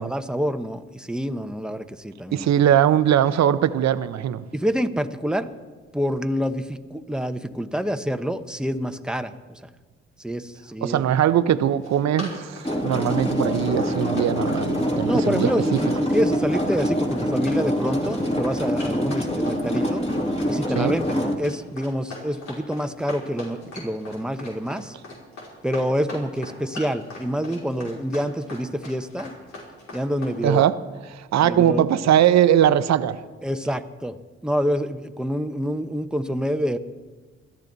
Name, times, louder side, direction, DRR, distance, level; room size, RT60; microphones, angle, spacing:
voice 1, 0.0-2.5 4.5-5.5 5.9-9.7 10.2-11.0 15.1-20.1 20.5-25.0 25.6-29.4 29.9-30.6 31.4-31.9 33.4-34.2 34.4-36.8, equal, 5° right, 8 dB, 1.0 m, -27 dB
voice 2, 2.3-4.5 10.8-15.8 20.7-20.9 30.4-30.8 31.1-33.2, right 10 dB, 65° right, 13 dB, 0.8 m, -20 dB
Run, 11.6-30.4, left 2 dB, 75° left, 5.5 m, -40 dB
sound 1, 12.6-21.3, equal, 20° left, 2.6 m, -25 dB
21.5 x 13.5 x 4.1 m, 1.3 s
supercardioid pair, 65°, 29 cm